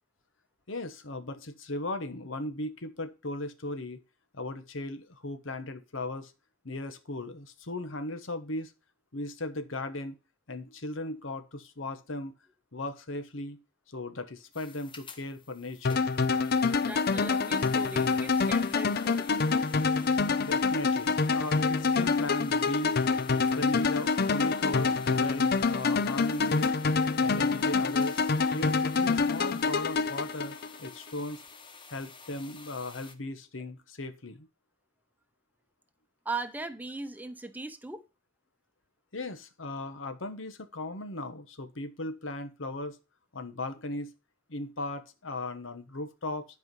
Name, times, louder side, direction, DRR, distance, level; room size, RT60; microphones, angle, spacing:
voice 1, 0.7-4.0 4.3-6.3 6.6-8.7 9.1-10.2 10.5-12.3 12.7-13.6 13.9-16.1 20.4-23.0 23.5-26.7 27.2-28.2 28.5-31.4 31.9-34.5 39.1-43.0 43.3-44.1 44.5-46.5, left 2 dB, 85° left, 1.2 m, -37 dB
sound 1, 14.5-33.1, left 4 dB, 25° left, 1.1 m, -50 dB
sound 2, 15.8-30.9, left 4 dB, 55° left, 0.5 m, -26 dB
voice 2, 16.8-19.3 36.2-38.0, right 3 dB, 10° right, 0.8 m, -39 dB
11.0 x 4.9 x 5.4 m
head